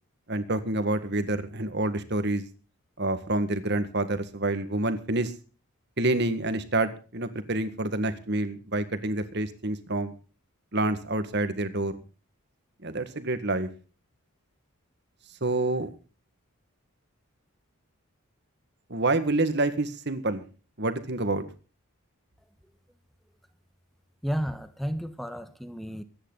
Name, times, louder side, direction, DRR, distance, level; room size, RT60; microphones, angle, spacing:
voice 1, 0.3-2.5 3.0-5.3 6.0-10.1 10.7-12.0 12.8-13.7 15.4-15.9 18.9-20.4 20.8-21.4, right 2 dB, 50° right, 1.8 m, -27 dB
voice 2, 24.2-26.0, equal, ahead, 1.2 m, -32 dB
23.5 x 10.0 x 4.0 m
head